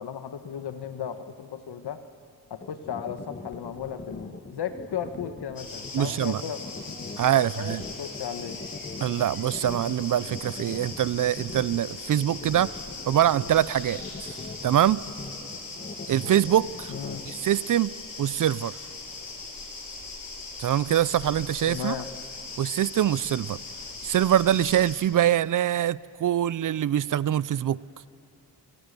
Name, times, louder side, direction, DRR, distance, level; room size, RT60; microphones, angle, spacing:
voice 1, 0.0-2.0 2.5-6.6 7.3-8.6 16.9-17.2 21.7-22.1, left 8 dB, 80° left, 9 dB, 1.4 m, -35 dB
sound 1, 2.6-17.3, left 3 dB, 25° left, 1.6 m, -41 dB
sound 2, 5.6-24.9, left 3 dB, 60° left, 5.7 m, -40 dB
voice 2, 5.9-6.4 7.2-7.8 9.0-14.4 14.6-15.0 16.1-16.9 17.3-17.9 18.2-18.8 20.6-22.0 22.6-23.6 24.0-27.8, right 11 dB, 55° right, 20 dB, 0.4 m, -24 dB
29.0 x 20.0 x 6.8 m, 2.9 s
wide cardioid pair, 115°, 39 cm